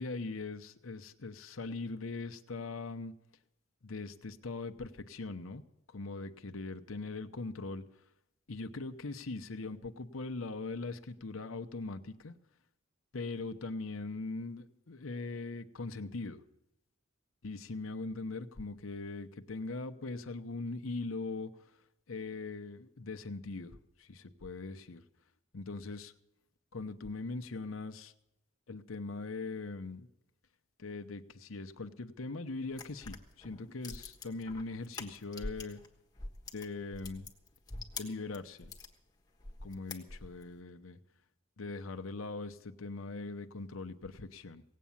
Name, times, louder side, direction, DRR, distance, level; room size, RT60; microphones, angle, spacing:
voice 1, 0.0-3.1 3.8-5.6 5.9-7.8 8.5-12.4 13.1-16.4 17.4-21.5 22.1-25.0 25.5-26.1 26.7-28.1 28.7-30.1 30.8-35.8 36.5-37.3 38.0-38.7 39.6-41.0 41.6-44.6, left 3 dB, 85° left, 9 dB, 0.9 m, -41 dB
sound 1, 32.7-35.9 36.1-38.9 39.4-40.5, left 3 dB, 20° left, 1.3 m, -45 dB
17.5 x 8.5 x 7.1 m, 0.89 s
head